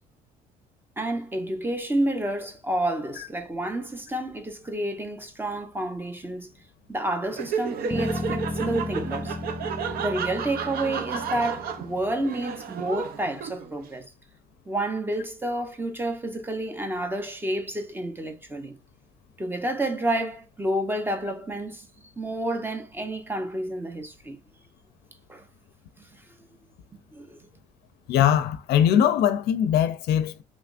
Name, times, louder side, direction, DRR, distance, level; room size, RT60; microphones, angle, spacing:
voice 1, 1.0-6.5 6.9-9.4 10.0-14.1 14.7-18.8 19.4-24.4 25.3-25.5 26.0-26.3 26.9-27.4, right 1 dB, 10° right, 0.7 m, -30 dB
Laughter, 7.3-13.9, right 7 dB, 60° right, 0.6 m, -32 dB
Bass guitar, 7.9-12.3, left 3 dB, 20° left, 0.4 m, -35 dB
voice 2, 28.1-30.4, left 10 dB, 75° left, 0.5 m, -21 dB
3.3 x 3.1 x 2.5 m
cardioid pair, 110°, 17 cm